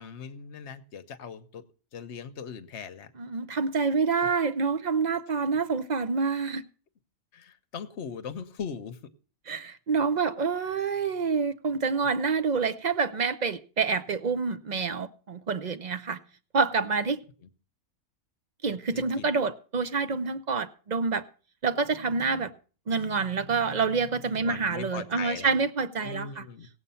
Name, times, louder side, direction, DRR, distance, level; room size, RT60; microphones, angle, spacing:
voice 1, 0.0-1.6 1.9-3.1 7.3-9.0 18.9-19.3 24.4-25.5 26.0-26.7, left 6 dB, 50° left, 9 dB, 1.1 m, -39 dB
voice 2, 3.2-6.6 9.5-16.2 16.5-17.2 18.6-21.2 21.6-22.5 22.9-26.4, right 5 dB, 50° right, 11 dB, 0.5 m, -27 dB
16.5 x 8.2 x 5.6 m, 0.38 s
omnidirectional pair, 1.6 m